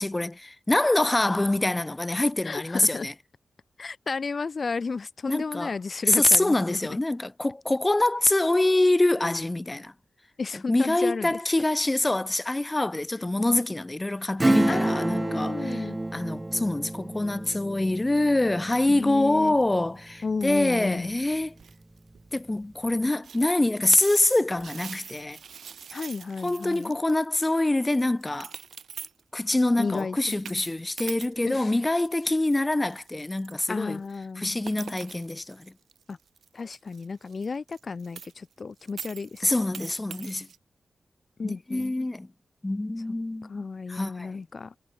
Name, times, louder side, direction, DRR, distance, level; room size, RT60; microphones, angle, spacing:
voice 1, 0.0-3.1 5.3-5.7 6.1-9.9 10.7-15.9 16.1-21.5 22.3-25.4 26.4-28.5 29.3-34.0 34.4-35.7 39.4-40.5 41.4-42.3 42.6-44.4, left 2 dB, 20° left, 0.8 m, -25 dB
voice 2, 2.4-3.1 3.8-6.8 10.4-11.4 14.7-16.0 18.9-19.6 20.2-21.1 25.9-26.9 29.8-30.4 31.4-31.7 32.2-32.3 33.7-34.5 36.1-36.2 36.5-39.5 41.4-42.1 43.1-43.2 43.4-44.8, left 4 dB, 55° left, 0.6 m, -33 dB
Acoustic guitar / Strum, 14.4-20.6 21.0-21.1, right 2 dB, 20° right, 0.9 m, -29 dB
sound 1, 21.6-22.3 22.5-22.6 23.2-27.2 27.6-27.7 27.9-29.2 29.9-32.6 32.9-38.5 38.8-40.6, right 7 dB, 85° right, 3.4 m, -44 dB
cardioid pair, 60°, 0 cm